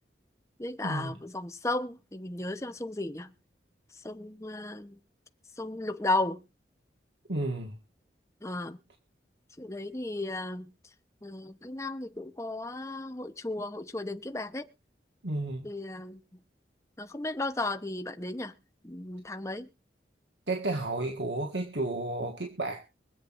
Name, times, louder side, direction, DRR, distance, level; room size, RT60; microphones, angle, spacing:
voice 1, 0.6-3.3 4.0-5.0 5.6-6.4 8.4-8.8 9.6-10.7 11.2-14.7 15.6-16.2 17.0-18.5 18.8-19.7, left 2 dB, 15° left, 0.9 m, -34 dB
voice 2, 7.3-7.8 15.2-15.7 20.5-22.8, right 2 dB, 75° right, 1.8 m, -32 dB
24.0 x 8.1 x 2.6 m
head